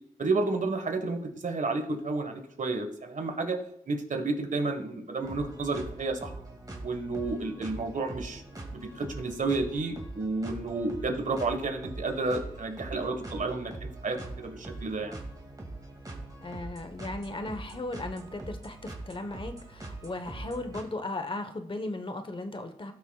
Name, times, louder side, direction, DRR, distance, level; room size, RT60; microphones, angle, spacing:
voice 1, 0.2-3.6 3.9-6.3 6.8-8.4 8.7-15.2, right 3 dB, 55° right, 5 dB, 1.6 m, -31 dB
sound 1, 5.2-20.8, right 2 dB, 25° right, 2.4 m, -42 dB
voice 2, 16.4-22.9, left 2 dB, 35° left, 7 dB, 1.2 m, -36 dB
16.5 x 6.4 x 2.4 m, 0.72 s
cardioid pair, 65°, 15 cm